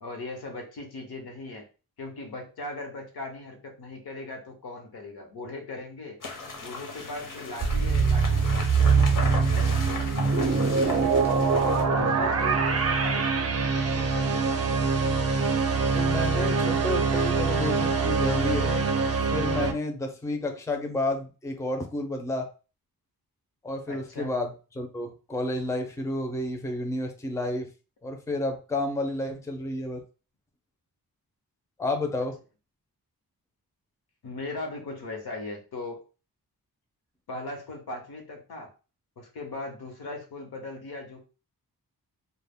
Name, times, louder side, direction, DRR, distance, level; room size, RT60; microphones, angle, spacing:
voice 1, 0.0-1.7 2.0-6.2 6.6-11.0 11.6-14.9 23.9-24.3 34.2-36.0 37.3-38.7 39.2-41.2, left 2 dB, 80° left, 3 dB, 0.9 m, -39 dB
sound 1, 6.2-11.8, left 3 dB, 60° left, 0.7 m, -37 dB
sound 2, 7.6-19.7, right 4 dB, 45° right, 0.5 m, -24 dB
voice 2, 12.0-12.3 15.9-18.9 19.3-22.5 23.6-27.7 28.0-30.0 31.8-32.4, left 1 dB, 10° left, 4 dB, 0.4 m, -31 dB
2.1 x 2.0 x 3.4 m, 0.34 s
wide cardioid pair, 110°, 37 cm